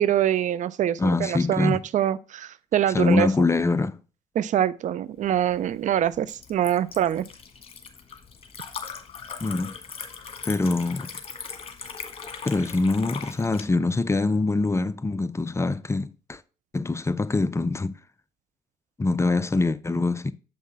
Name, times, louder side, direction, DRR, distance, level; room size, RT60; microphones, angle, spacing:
voice 1, 0.0-3.3 4.4-7.3, right 11 dB, 50° right, 0.4 m, -24 dB
voice 2, 1.0-1.8 2.9-4.0 9.4-9.7 10.5-11.1 12.4-16.4 16.7-17.9 19.0-20.3, left 3 dB, 15° left, 0.5 m, -24 dB
Liquid, 5.3-13.6, left 6 dB, 35° left, 1.5 m, -40 dB
7.5 x 5.4 x 3.4 m
hypercardioid pair, 55°, 16 cm